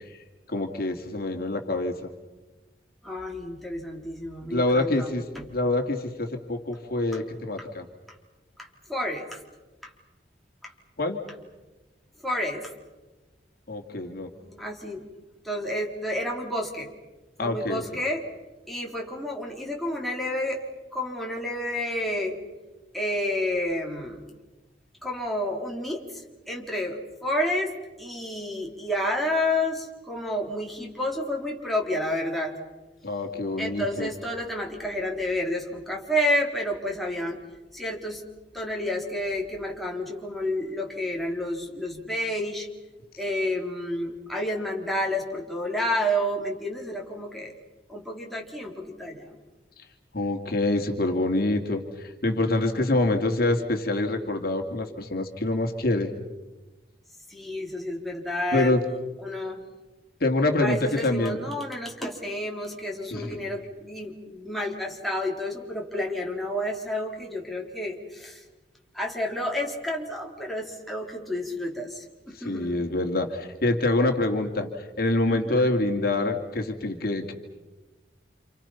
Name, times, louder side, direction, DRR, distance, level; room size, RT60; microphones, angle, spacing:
voice 1, 0.5-2.1 4.5-5.2 5.5-7.9 11.0-11.2 13.7-14.3 17.4-17.8 33.0-34.1 49.8-49.9 50.1-56.1 58.5-58.8 60.2-61.4 63.1-63.3 72.3-77.3, left 2 dB, 60° left, 4 dB, 2.5 m, -26 dB
voice 2, 3.0-5.5 8.6-9.4 9.8-9.9 10.6-10.7 12.2-12.7 13.8-15.1 15.4-16.9 17.4-18.2 18.7-22.4 22.9-24.3 25.0-32.6 33.6-37.4 37.7-38.2 38.5-42.7 43.2-47.5 47.9-49.4 52.4-53.0 57.3-58.7 59.2-59.6 60.6-68.4 68.9-72.8 75.3-75.7, left 1 dB, ahead, -2 dB, 3.8 m, -30 dB
30.0 x 28.5 x 5.7 m, 1.2 s
head